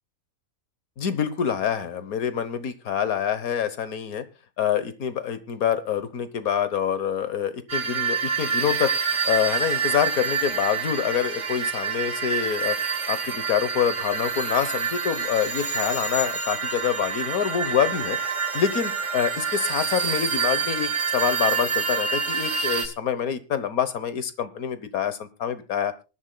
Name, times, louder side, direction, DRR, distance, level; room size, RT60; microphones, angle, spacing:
voice 1, 1.0-4.2 4.6-12.8 13.1-18.2 18.5-25.9, left 8 dB, 80° left, 12 dB, 1.5 m, -26 dB
sound 1, 7.7-22.9, right 5 dB, 55° right, 2.1 m, -27 dB
24.5 x 11.5 x 2.2 m, 0.30 s
omnidirectional pair, 1.5 m